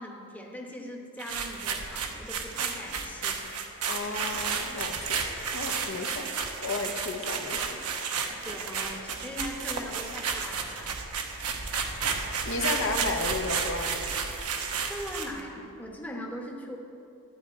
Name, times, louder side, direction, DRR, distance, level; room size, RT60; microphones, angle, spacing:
voice 1, 0.0-3.5 8.3-11.0 14.9-16.8, equal, 5° left, -1 dB, 1.0 m, -40 dB
sound 1, 1.2-15.4, right 5 dB, 90° right, 0.9 m, -32 dB
voice 2, 3.8-5.2 5.5-6.3 6.6-7.8 12.4-14.0, left 3 dB, 60° left, 4 dB, 0.8 m, -33 dB
12.0 x 4.7 x 8.4 m, 2.7 s
head